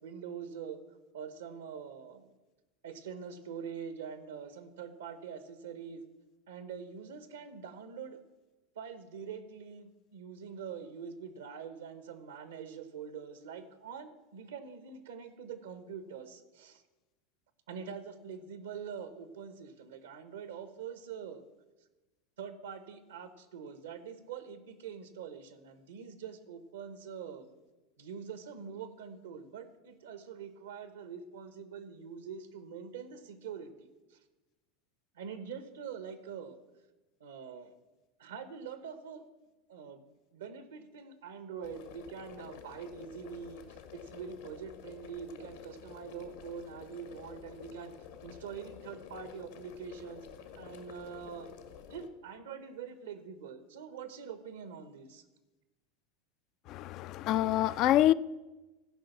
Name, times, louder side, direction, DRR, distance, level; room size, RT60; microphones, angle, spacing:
voice 1, 0.0-0.8 1.1-2.3 2.8-6.1 6.5-8.2 8.7-16.8 17.7-21.4 22.4-27.6 28.0-34.2 35.1-36.6 37.2-37.7 38.2-39.2 39.7-40.0 40.3-47.9 48.2-50.3 50.5-51.5 51.9-55.2, right 7 dB, 80° right, 1.1 m, -44 dB
sound 1, 41.6-52.1, left 8 dB, 70° left, 1.3 m, -50 dB
voice 2, 56.7-58.1, left 13 dB, 50° left, 0.3 m, -26 dB
14.0 x 5.3 x 7.0 m
hypercardioid pair, 90°, 0 cm